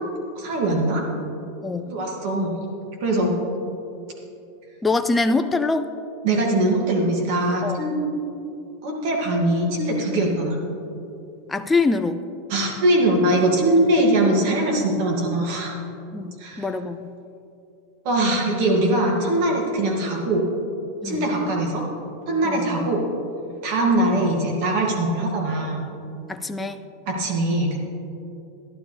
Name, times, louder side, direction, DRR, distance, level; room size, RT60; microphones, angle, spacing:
voice 1, 0.3-1.0 1.9-2.6 3.0-3.4 6.2-7.9 8.8-10.6 12.5-15.7 16.4-16.7 18.0-20.4 21.0-21.8 22.3-23.0 23.6-25.8 27.1-27.8, right 1 dB, 55° right, -1 dB, 2.5 m, -21 dB
voice 2, 4.8-5.9 7.6-7.8 11.5-12.2 16.1-17.1 21.0-21.3 22.4-22.7 26.3-26.8, left 3 dB, 10° left, 7 dB, 0.4 m, -24 dB
12.5 x 11.5 x 3.5 m, 2.7 s
supercardioid pair, 140°, 0 cm